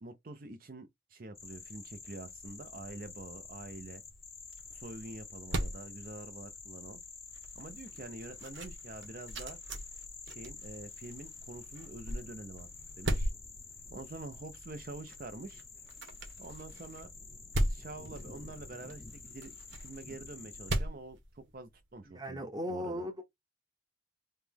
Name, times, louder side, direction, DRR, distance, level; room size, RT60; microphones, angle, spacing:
voice 1, 0.0-4.0 4.7-7.0 7.6-9.6 10.3-12.7 13.0-13.3 13.9-15.6 16.4-17.1 17.7-19.5 19.8-22.4 22.7-23.0, right 2 dB, 50° right, 0.6 m, -46 dB
sound 1, 1.3-20.8, left 4 dB, 15° left, 0.6 m, -49 dB
sound 2, 3.2-22.0, right 1 dB, 85° right, 1.2 m, -40 dB
voice 2, 22.1-23.2, left 1 dB, 20° right, 0.8 m, -37 dB
3.2 x 3.0 x 3.5 m
head